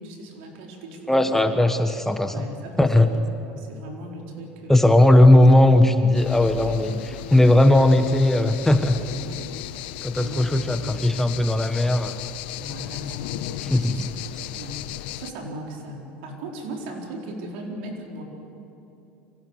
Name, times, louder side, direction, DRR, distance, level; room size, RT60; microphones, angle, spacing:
voice 1, 0.0-1.2 2.3-3.1 3.5-5.0 9.0-9.6 10.2-10.5 10.8-11.1 12.6-14.9 15.2-18.2, right 1 dB, 80° right, 1 dB, 4.4 m, -38 dB
voice 2, 1.1-2.5 2.8-3.1 4.7-9.0 10.0-12.2 13.7-14.0, left 1 dB, 5° left, 7 dB, 1.3 m, -17 dB
sound 1, 6.1-15.3, left 15 dB, 80° left, 0.8 m, -35 dB
25.0 x 17.0 x 8.2 m, 2.9 s
supercardioid pair, 100°, 6 cm